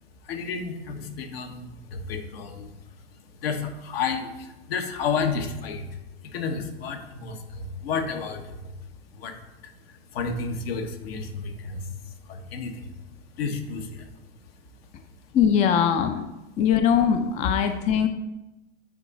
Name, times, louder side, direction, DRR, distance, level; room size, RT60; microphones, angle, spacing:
voice 1, 0.2-5.9 6.2-8.7 9.1-12.9 13.4-14.1, left 5 dB, 70° left, 4 dB, 1.2 m, -32 dB
voice 2, 15.3-16.3 16.6-18.1, left 8 dB, 25° left, 8 dB, 0.4 m, -21 dB
9.3 x 3.7 x 4.1 m, 0.99 s
hypercardioid pair, 115°, 31 cm